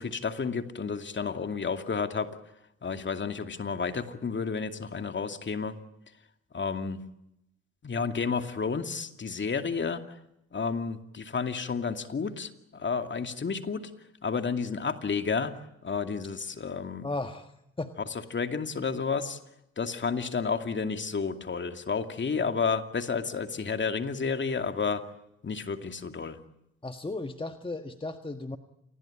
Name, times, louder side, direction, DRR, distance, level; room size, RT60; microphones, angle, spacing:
voice 1, 0.0-2.3 2.8-5.8 6.5-7.0 7.8-10.2 10.5-13.9 14.2-15.5 15.8-17.1 18.3-19.4 19.8-25.0 25.4-26.4, left 5 dB, 35° left, 7 dB, 2.5 m, -31 dB
voice 2, 17.0-17.9 26.8-28.6, left 2 dB, 15° left, 8 dB, 1.6 m, -35 dB
28.0 x 21.0 x 8.8 m, 0.82 s
hypercardioid pair, 50°, 32 cm